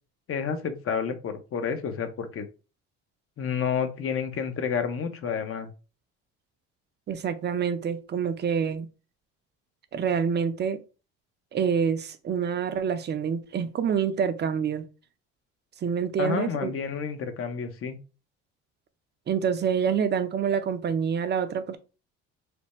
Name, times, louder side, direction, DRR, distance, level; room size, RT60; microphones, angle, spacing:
voice 1, 0.3-2.5 3.4-5.7 16.2-18.0, left 6 dB, 45° left, 0.8 m, -30 dB
voice 2, 7.1-8.9 9.9-10.8 11.5-14.8 15.8-16.7 19.3-21.8, right 7 dB, 35° right, 0.6 m, -27 dB
3.4 x 2.1 x 4.1 m
supercardioid pair, 95°, 31 cm